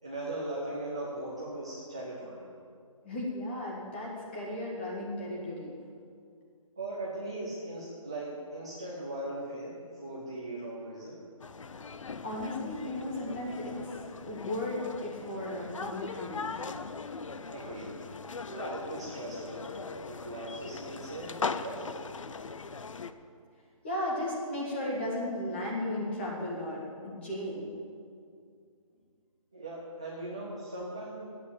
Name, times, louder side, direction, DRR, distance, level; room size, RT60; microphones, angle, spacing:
voice 1, 0.0-2.5 6.8-11.2 17.5-17.9 18.5-19.8 20.1-21.9 29.5-31.3, right 1 dB, 10° right, -7 dB, 0.5 m, -39 dB
voice 2, 3.0-5.7 12.2-16.7 23.8-27.7, left 1 dB, 20° left, -4 dB, 1.9 m, -35 dB
sound 1, 11.4-23.1, left 4 dB, 60° left, 0.6 m, -40 dB
9.6 x 8.5 x 8.2 m, 2.3 s
hypercardioid pair, 180°, 18 cm